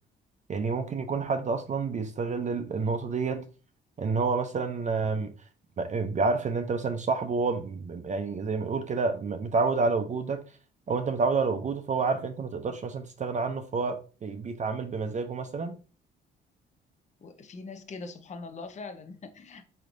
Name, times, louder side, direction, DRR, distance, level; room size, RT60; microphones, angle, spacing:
voice 1, 0.5-3.5 4.0-5.3 5.8-10.4 10.9-15.8, right 4 dB, 40° right, 0.5 m, -29 dB
voice 2, 17.2-19.6, left 3 dB, 35° left, 0.6 m, -42 dB
4.6 x 3.2 x 2.6 m
cardioid pair, 90°, 20 cm